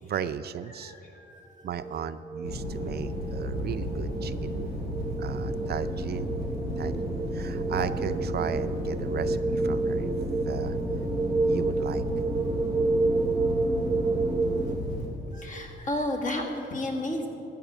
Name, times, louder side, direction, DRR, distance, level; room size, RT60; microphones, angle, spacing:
voice 1, 0.0-0.9 1.6-4.7 5.2-6.3 6.8-10.1 10.5-10.8 11.4-12.0, right 8 dB, 55° right, 12 dB, 0.5 m, -35 dB
voice 2, 0.7-1.7 2.7-2.9 15.3-17.3, left 1 dB, 40° left, 2 dB, 1.9 m, -33 dB
sound 1, 1.7-14.8, right 3 dB, 15° right, 0.7 m, -30 dB
sound 2, 2.4-15.1, left 1 dB, 80° left, 3.1 m, -34 dB
14.0 x 5.6 x 8.8 m, 3.0 s
cardioid pair, 90°, 20 cm